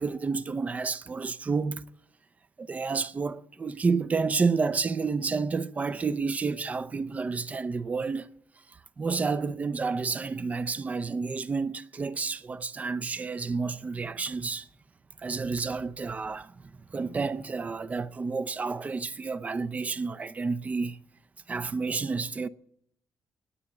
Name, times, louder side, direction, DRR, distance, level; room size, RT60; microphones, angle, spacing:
voice 1, 0.0-1.8 2.6-8.3 9.0-14.7 15.2-16.5 16.9-21.0 21.5-22.5, right 4 dB, 25° right, 0.5 m, -30 dB
19.5 x 8.5 x 7.9 m
cardioid pair, 140°, 6 cm